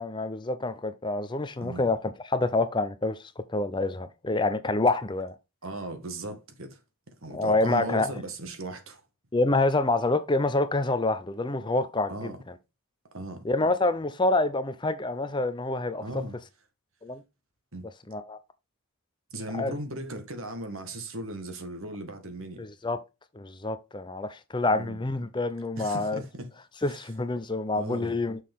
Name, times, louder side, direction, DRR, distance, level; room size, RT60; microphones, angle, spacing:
voice 1, 0.0-2.0 2.2-3.2 3.5-5.3 7.3-8.1 9.3-12.3 13.4-16.0 17.0-17.2 18.1-18.4 19.5-19.7 22.6-23.0 23.3-26.2 26.8-28.4, left 2 dB, 20° left, 0.6 m, -27 dB
voice 2, 1.6-1.9 5.6-6.8 7.2-9.0 12.1-12.4 13.1-13.4 16.0-16.4 17.7-17.9 19.3-22.7 24.7-25.0 25.8-26.5 26.9-27.0 27.7-28.2, right 1 dB, 65° right, 1.7 m, -37 dB
6.6 x 6.0 x 3.6 m
head